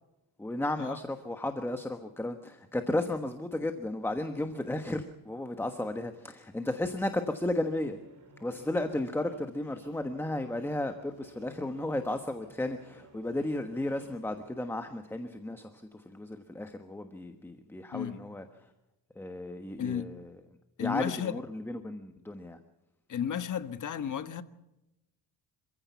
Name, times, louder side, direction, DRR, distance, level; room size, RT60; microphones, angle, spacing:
voice 1, 0.4-8.0 8.4-18.7 19.1-20.4 20.8-22.6, left 1 dB, 5° left, 1.3 m, -34 dB
sound 1, 7.7-14.6, right 3 dB, 45° right, 6.2 m, -57 dB
voice 2, 19.8-20.1 20.8-21.4 23.1-24.4, left 8 dB, 45° left, 1.4 m, -33 dB
27.5 x 15.5 x 7.1 m
cardioid pair, 145°, 44 cm